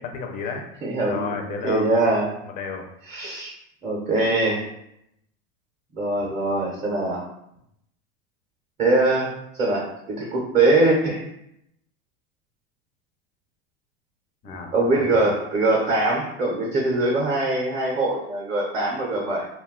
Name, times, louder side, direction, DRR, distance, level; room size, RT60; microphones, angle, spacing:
voice 1, 0.1-0.6 1.1-1.9 2.4-2.8 14.4-15.2, left 4 dB, 25° left, 3 dB, 0.4 m, -32 dB
voice 2, 0.8-1.3 1.6-2.3 3.1-3.5 3.8-4.7 5.9-7.2 8.8-11.3 14.5-19.5, right 2 dB, 25° right, -3 dB, 0.5 m, -22 dB
2.3 x 2.2 x 3.5 m, 0.77 s
supercardioid pair, 130°, 31 cm